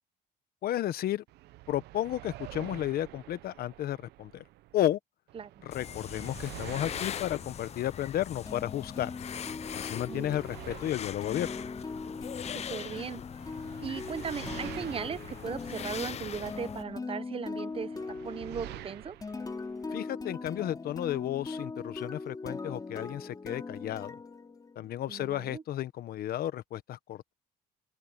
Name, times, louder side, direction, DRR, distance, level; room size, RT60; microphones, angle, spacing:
voice 1, 0.6-1.2 1.7-4.4 4.7-5.0 5.6-9.1 9.7-11.5 19.9-24.2 24.7-27.3, left 12 dB, 65° left, 1.2 m, -33 dB
sound 1, 1.3-4.9 5.3-8.9 9.3-13.0 13.4-17.0 17.5-20.0, right 17 dB, 80° right, 0.8 m, -49 dB
sound 2, 5.7-16.8, left 9 dB, 40° left, 0.6 m, -41 dB
sound 3, 8.5-25.1, left 4 dB, 20° left, 3.5 m, -41 dB
voice 2, 10.1-10.4 12.5-13.2 13.8-19.2 25.1-25.6, right 6 dB, 35° right, 1.0 m, -38 dB
open air
cardioid pair, 110°, 17 cm